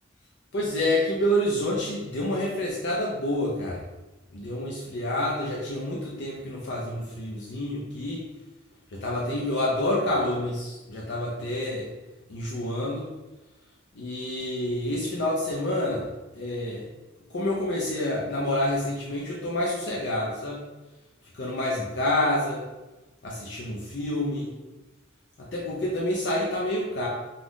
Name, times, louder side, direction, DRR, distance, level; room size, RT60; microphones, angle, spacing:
voice 1, 0.5-3.8 4.3-8.3 8.9-11.9 12.3-13.1 13.9-16.1 16.3-16.9 17.3-20.6 21.3-22.6 23.2-24.5 25.4-27.1, left 1 dB, 65° left, -4 dB, 0.5 m, -28 dB
2.6 x 2.4 x 3.4 m, 1.1 s
head